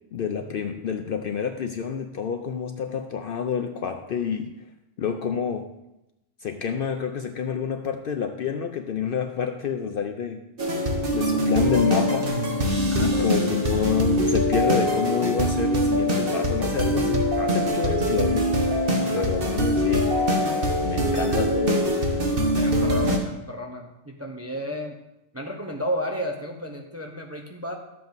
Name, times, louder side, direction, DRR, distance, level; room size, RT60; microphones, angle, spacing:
voice 1, 0.1-4.5 5.0-5.7 6.4-10.4 11.1-12.3 12.8-18.5 19.1-20.2 20.8-22.1, left 7 dB, 60° left, 6 dB, 0.6 m, -28 dB
sound 1, 10.6-23.2, equal, 50° right, 1.3 m, -23 dB
voice 2, 21.1-21.7 22.5-25.0 25.3-27.7, equal, 15° right, 2 dB, 0.6 m, -33 dB
12.5 x 7.6 x 2.6 m, 0.92 s
omnidirectional pair, 1.3 m